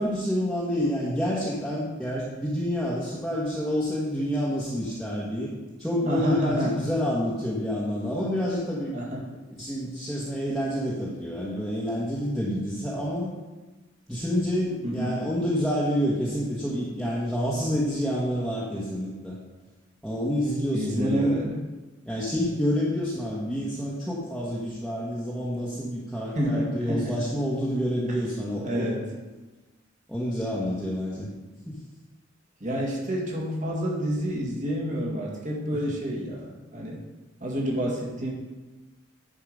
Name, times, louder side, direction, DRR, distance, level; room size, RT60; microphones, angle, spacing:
voice 1, 0.0-5.5 5.8-8.9 9.6-13.3 14.1-19.4 20.0-21.4 22.0-28.9 30.1-31.3 31.7-31.8, equal, ahead, -8 dB, 1.3 m, -28 dB
voice 2, 6.1-6.7 8.9-9.3 14.8-15.1 20.7-21.6 26.3-27.2 28.1-28.2 28.6-29.1 32.6-37.0 37.4-38.3, equal, 40° right, -2 dB, 1.9 m, -28 dB
10.0 x 4.8 x 5.1 m, 1.2 s
head